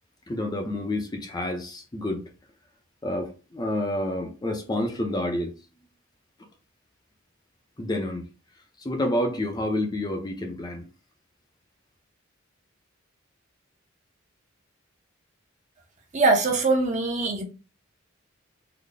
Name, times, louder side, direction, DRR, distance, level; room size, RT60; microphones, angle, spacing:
voice 1, 0.3-2.3 3.0-5.5 7.8-8.3 8.8-10.9, left 1 dB, 20° left, 0.5 m, -29 dB
voice 2, 16.1-17.4, right 3 dB, 35° right, 0.7 m, -22 dB
3.9 x 2.0 x 3.3 m
head